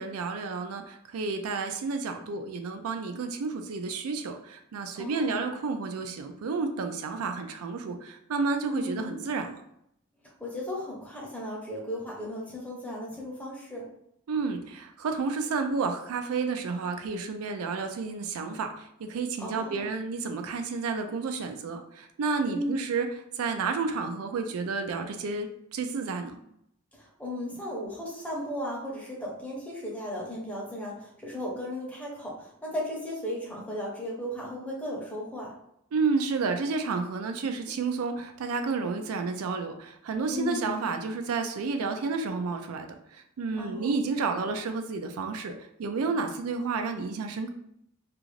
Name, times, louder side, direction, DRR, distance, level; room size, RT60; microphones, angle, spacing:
voice 1, 0.0-9.6 14.3-23.1 23.4-26.4 35.9-45.5 45.8-47.5, right 4 dB, 85° right, 6 dB, 0.4 m, -31 dB
voice 2, 5.0-5.4 8.7-9.1 10.2-13.9 19.4-19.9 22.5-22.8 26.9-35.5 40.3-40.7 43.5-44.0, left 1 dB, 5° left, -3 dB, 0.6 m, -36 dB
2.4 x 2.4 x 3.1 m, 0.74 s
head